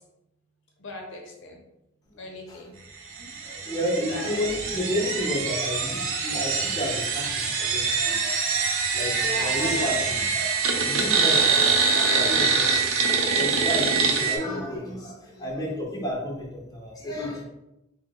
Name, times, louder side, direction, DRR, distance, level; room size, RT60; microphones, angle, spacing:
voice 1, 0.8-1.6 2.2-2.7 4.1-4.4 9.0-10.3, left 1 dB, 65° left, 1 dB, 0.7 m, -37 dB
sound 1, 3.2-14.4, right 5 dB, 75° right, 0.6 m, -24 dB
voice 2, 3.4-8.2 8.9-17.4, left 1 dB, 20° left, -3 dB, 0.8 m, -31 dB
3.6 x 2.2 x 3.6 m, 0.88 s
head